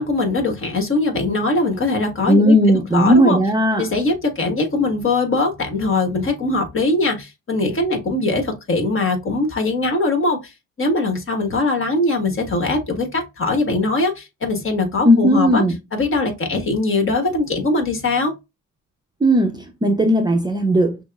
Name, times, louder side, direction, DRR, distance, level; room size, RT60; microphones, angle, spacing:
voice 1, 0.0-2.6 2.9-3.4 3.8-15.6 15.9-18.3, left 2 dB, 45° left, 1.4 m, -21 dB
voice 2, 2.3-3.9 15.0-15.8 19.2-21.0, equal, 15° right, 0.6 m, -16 dB
6.0 x 2.0 x 2.3 m
cardioid pair, 90°, 30 cm